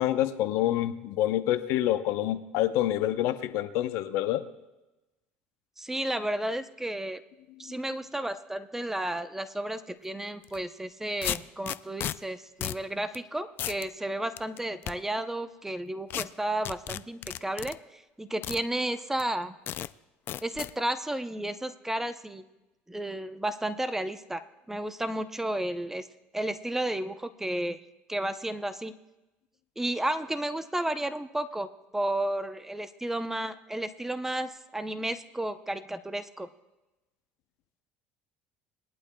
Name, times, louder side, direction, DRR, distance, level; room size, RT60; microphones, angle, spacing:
voice 1, 0.0-4.4, left 13 dB, 70° left, 11 dB, 0.8 m, -27 dB
voice 2, 5.8-7.2 7.6-19.6 20.4-22.4 22.9-26.1 26.3-27.8 28.1-28.9 29.8-36.5, right 1 dB, 10° right, 11 dB, 0.7 m, -32 dB
sound 1, 10.4-10.6 11.2-12.2 12.6-12.8 13.1-13.2 13.6-13.9 14.4-14.9 16.1-16.3 16.7-17.8 18.4-18.6 19.2-19.3 19.7-19.9 20.3-20.7, left 12 dB, 50° left, 0.4 m, -33 dB
20.5 x 11.5 x 2.3 m, 1.0 s
supercardioid pair, 100°, 5 cm